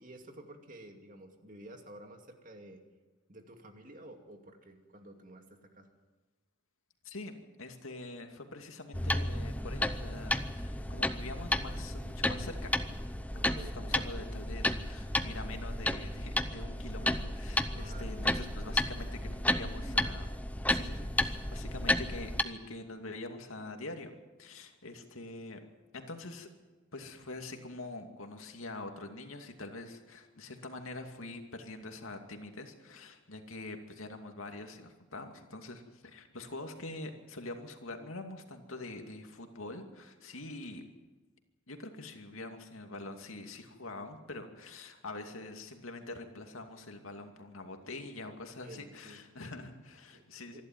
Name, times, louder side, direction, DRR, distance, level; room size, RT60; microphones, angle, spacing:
voice 1, 0.0-2.8 3.3-5.9 13.3-14.0 17.7-18.7 48.6-49.2 50.1-50.2 50.5-50.6, right 1 dB, 40° right, 4 dB, 2.4 m, -51 dB
voice 2, 7.0-12.7 13.3-20.3 20.7-24.1 24.4-25.6 25.9-26.5 26.9-40.8 41.7-50.6, left 2 dB, 85° left, 5 dB, 2.5 m, -45 dB
sound 1, 8.9-22.4, left 1 dB, 5° left, 0.7 m, -33 dB
25.5 x 12.0 x 9.5 m, 1.2 s
head